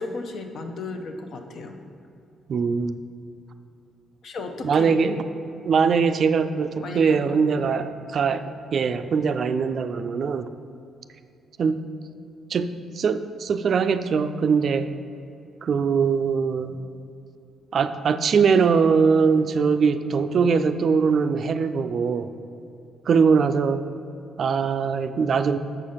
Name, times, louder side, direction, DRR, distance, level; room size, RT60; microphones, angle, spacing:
voice 1, 0.0-1.8 4.2-5.2 6.8-7.2 7.6-7.8 16.6-16.8, left 3 dB, 65° left, 5 dB, 0.7 m, -34 dB
voice 2, 2.5-3.0 4.6-5.2 5.7-7.8 8.1-8.4 8.7-10.5 11.6-11.8 12.5-14.9 15.6-16.8 17.7-22.3 23.1-23.8 24.4-25.6, right 5 dB, 55° right, 10 dB, 0.3 m, -21 dB
6.7 x 4.9 x 5.6 m, 2.6 s
cardioid pair, 90°, 0 cm